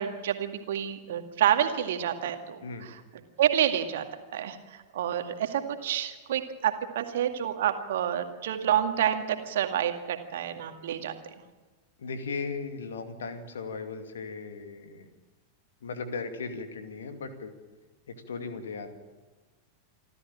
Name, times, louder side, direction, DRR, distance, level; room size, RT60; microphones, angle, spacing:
voice 1, 0.0-3.0 3.4-4.0 4.3-11.1, right 10 dB, 60° right, 6 dB, 2.0 m, -28 dB
voice 2, 12.0-15.1 15.8-17.5 18.3-18.9, left 4 dB, 65° left, 7 dB, 2.5 m, -37 dB
27.0 x 13.5 x 8.9 m, 1.3 s
figure-of-eight pair, 90°, 0 cm